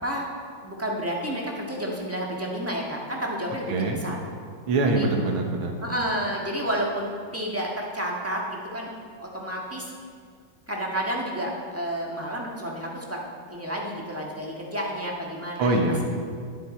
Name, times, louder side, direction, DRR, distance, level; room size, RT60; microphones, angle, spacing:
voice 1, 0.6-4.2 4.9-5.1 5.8-8.9 9.2-9.9 10.7-13.2 13.5-15.8, equal, 10° right, -2 dB, 1.2 m, -30 dB
voice 2, 3.7-4.0 4.7-5.7 15.6-16.1, right 2 dB, 80° right, 2 dB, 2.1 m, -23 dB
18.5 x 7.9 x 4.3 m, 2.1 s
omnidirectional pair, 2.3 m